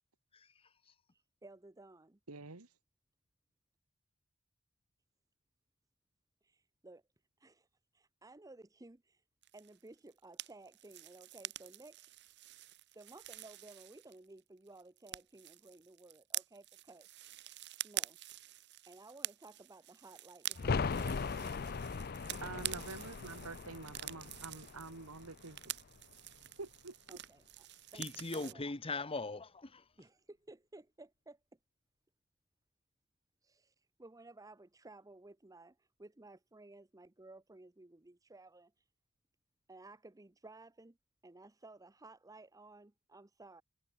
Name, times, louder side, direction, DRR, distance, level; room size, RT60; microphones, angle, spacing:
voice 1, 1.4-2.2 6.4-7.0 7.4-7.7 7.9-9.2 9.5-12.1 12.9-17.1 17.8-18.2 18.9-21.7 23.3-23.5 27.1-28.1 28.3-28.6 30.0-31.4 33.4-38.7 39.7-41.0 41.2-43.6, right 2 dB, 15° right, 0.7 m, -56 dB
voice 2, 2.3-2.7 22.4-25.6 26.6-27.2, right 3 dB, 80° right, 2.1 m, -47 dB
sound 1, 9.4-14.4 14.7-28.5, right 14 dB, 50° right, 1.0 m, -47 dB
sound 2, 20.5-26.1 26.4-26.5, left 4 dB, 45° left, 0.6 m, -39 dB
voice 3, 27.9-29.9, left 3 dB, 25° left, 1.2 m, -40 dB
head